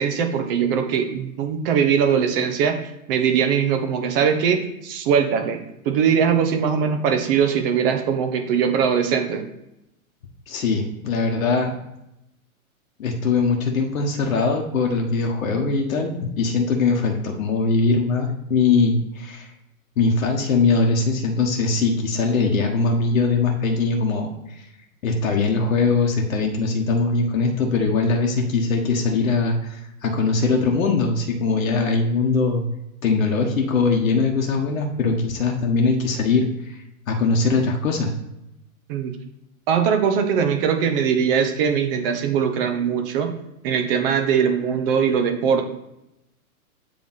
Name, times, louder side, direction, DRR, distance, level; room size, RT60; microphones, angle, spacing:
voice 1, 0.0-2.8 3.1-4.6 4.8-9.4 38.9-39.1 39.7-43.3 43.6-45.6, right 7 dB, 40° right, 6 dB, 0.9 m, -21 dB
voice 2, 10.5-11.7 13.0-19.5 20.0-24.3 24.6-24.7 25.0-32.6 33.0-38.1, left 4 dB, 65° left, 1 dB, 1.1 m, -21 dB
7.7 x 3.4 x 4.0 m, 0.86 s
figure-of-eight pair, 110°, 43 cm